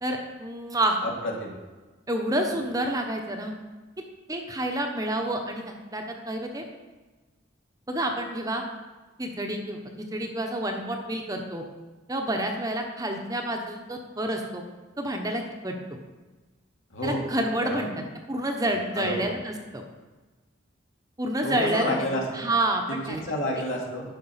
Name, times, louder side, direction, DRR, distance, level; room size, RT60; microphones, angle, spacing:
voice 1, 0.0-1.0 2.1-3.5 4.3-6.6 7.9-8.6 9.2-11.6 12.1-14.6 15.0-15.8 17.0-17.9 18.3-19.8 21.2-22.1 22.3-23.2, right 1 dB, 20° right, 3 dB, 1.0 m, -29 dB
voice 2, 1.0-1.6 16.9-17.2 17.6-17.8 18.9-19.3 21.4-22.2 22.9-24.1, left 1 dB, 75° left, -1 dB, 2.3 m, -30 dB
10.5 x 6.0 x 5.7 m, 1.3 s
head